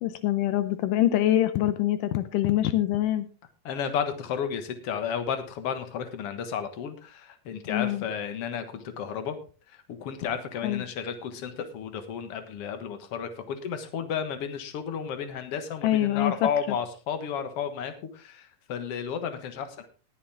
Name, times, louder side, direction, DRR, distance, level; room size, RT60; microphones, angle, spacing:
voice 1, 0.0-3.3 7.7-8.0 10.6-10.8 15.8-16.3, left 13 dB, 80° left, 12 dB, 2.3 m, -24 dB
voice 2, 3.7-9.4 9.7-19.9, left 7 dB, 55° left, 9 dB, 1.9 m, -32 dB
19.5 x 7.3 x 3.5 m, 0.36 s
omnidirectional pair, 3.9 m